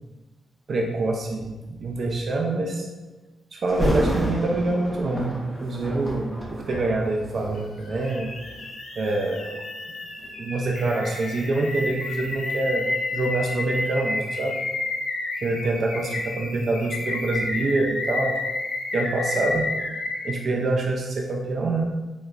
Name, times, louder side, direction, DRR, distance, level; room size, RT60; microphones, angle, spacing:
voice 1, 0.7-2.9 3.5-8.3 9.0-9.6 10.4-12.8 13.1-14.5 15.4-18.3 18.9-19.7 20.2-21.9, right 2 dB, 45° right, 0 dB, 0.3 m, -25 dB
Thunder, 3.7-8.7 9.3-9.5 10.2-13.0 13.3-13.4, equal, 5° left, 0.6 m, -31 dB
sound 1, 4.1-4.2 7.5-20.4, left 2 dB, 80° left, 0.5 m, -31 dB
3.6 x 3.0 x 2.3 m, 1.2 s
wide cardioid pair, 160°, 0 cm